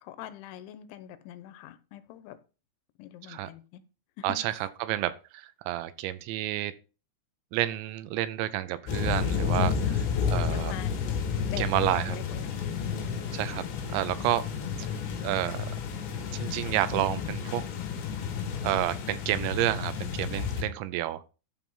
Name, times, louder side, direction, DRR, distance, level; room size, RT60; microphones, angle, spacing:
voice 1, 0.0-2.4 3.0-3.8 4.2-4.4 9.9-10.9 11.4-12.5 14.1-14.3, left 12 dB, 90° left, 3.2 m, -43 dB
voice 2, 4.2-6.7 7.5-10.7 11.6-12.2 13.3-14.4 15.2-15.7 16.3-17.6 18.6-21.2, right 14 dB, 80° right, 3.0 m, -30 dB
sound 1, 8.9-20.6, left 6 dB, 75° left, 4.0 m, -31 dB
13.0 x 4.6 x 5.5 m
omnidirectional pair, 5.2 m